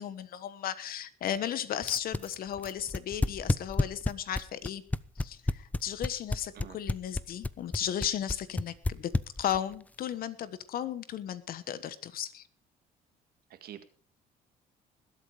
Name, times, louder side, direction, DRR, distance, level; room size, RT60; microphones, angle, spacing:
voice 1, 0.0-4.8 5.2-9.1 9.4-12.5, left 10 dB, 60° left, 15 dB, 1.2 m, -35 dB
sound 1, 1.8-9.7, left 2 dB, 10° left, 0.5 m, -29 dB
voice 2, 13.5-13.8, right 11 dB, 65° right, 9 dB, 1.9 m, -46 dB
20.0 x 8.4 x 5.0 m, 0.43 s
cardioid pair, 110°, 17 cm